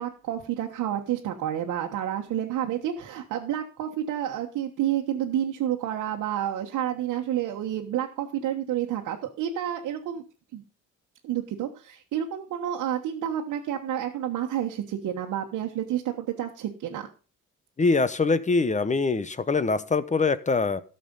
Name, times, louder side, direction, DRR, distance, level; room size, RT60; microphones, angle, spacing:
voice 1, 0.0-10.2 10.5-10.6 11.2-17.1, right 11 dB, 80° right, 0 dB, 1.3 m, -29 dB
voice 2, 17.8-20.8, left 4 dB, 25° left, 15 dB, 0.9 m, -23 dB
13.0 x 6.7 x 5.4 m, 0.36 s
cardioid pair, 90°, 30 cm